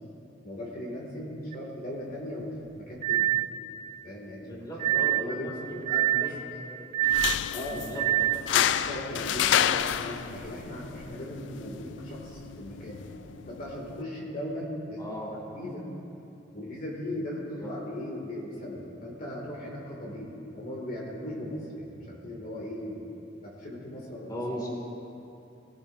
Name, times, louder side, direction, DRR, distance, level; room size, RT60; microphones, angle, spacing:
voice 1, 0.4-3.3 4.0-4.6 5.0-6.3 7.5-7.9 8.5-13.0 13.5-15.1 15.5-15.9 16.5-23.0 23.4-24.4, left 1 dB, 50° left, -4 dB, 2.4 m, -38 dB
sound 1, 1.5-1.6 3.0-3.6 4.8-5.3 5.9-6.4 6.9-7.4 8.0-8.5, right 15 dB, 40° right, 0.3 m, -25 dB
voice 2, 4.5-5.8 6.2-6.4 6.7-6.9 7.7-8.3 15.0-15.4 17.6-17.7 24.3-24.7, equal, 25° left, -4 dB, 2.4 m, -38 dB
sound 2, 7.0-14.0, left 10 dB, 75° left, 0.3 m, -30 dB
18.5 x 16.0 x 2.7 m, 2.8 s
head